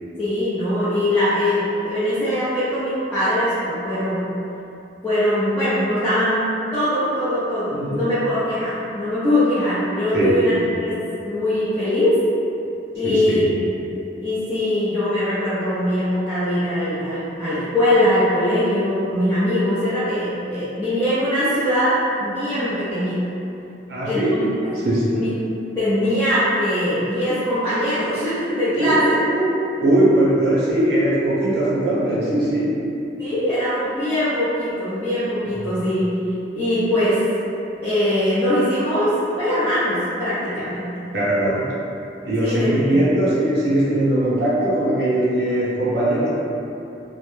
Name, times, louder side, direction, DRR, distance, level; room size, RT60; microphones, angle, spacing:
voice 1, 0.2-4.3 5.0-10.5 10.8-11.0 11.2-12.2 12.9-13.6 14.2-23.2 24.0-25.3 25.7-29.2 33.2-36.1 36.5-37.2 37.8-40.9 42.4-43.0, left 1 dB, 10° left, -16 dB, 0.6 m, -21 dB
voice 2, 7.7-8.1 10.1-10.7 13.0-13.5 23.9-24.4 24.8-25.1 28.8-29.5 29.8-32.9 35.6-35.7 41.1-41.7 42.2-46.3, right 1 dB, 70° right, -9 dB, 0.6 m, -20 dB
2.1 x 2.1 x 3.1 m, 2.8 s
head